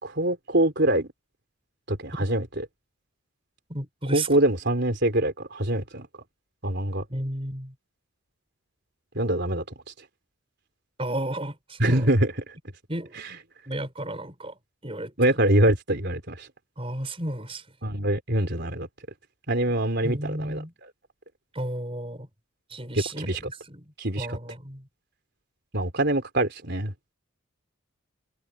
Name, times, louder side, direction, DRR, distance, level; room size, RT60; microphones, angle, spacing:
voice 1, 0.0-1.1 1.9-2.6 4.1-6.1 6.6-7.0 9.1-9.6 11.8-12.3 15.2-16.5 17.8-18.9 19.5-20.6 23.2-23.4 24.0-24.3 25.7-26.9, right 1 dB, 50° right, 4.2 m, -24 dB
voice 2, 3.7-4.3 7.1-7.7 11.0-12.1 12.9-13.1 13.7-14.6 14.8-15.1 16.8-17.6 20.0-20.7 21.5-22.3 22.7-24.9, right 1 dB, 25° right, 5.2 m, -33 dB
head